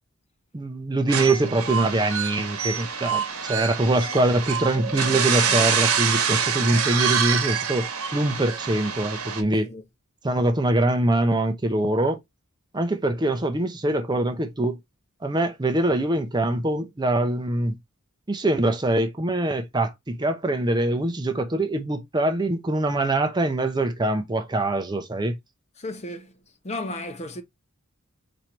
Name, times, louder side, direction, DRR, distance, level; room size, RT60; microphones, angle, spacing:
voice 1, 0.5-7.9 8.1-9.7 10.2-12.2 12.7-14.8 15.2-17.7 18.3-25.4, right 1 dB, 20° right, 0.5 m, -23 dB
sound 1, 1.1-9.4, right 7 dB, 85° right, 1.1 m, -26 dB
voice 2, 25.8-26.3 26.6-27.4, left 1 dB, 30° left, 0.7 m, -33 dB
4.4 x 2.6 x 4.4 m
head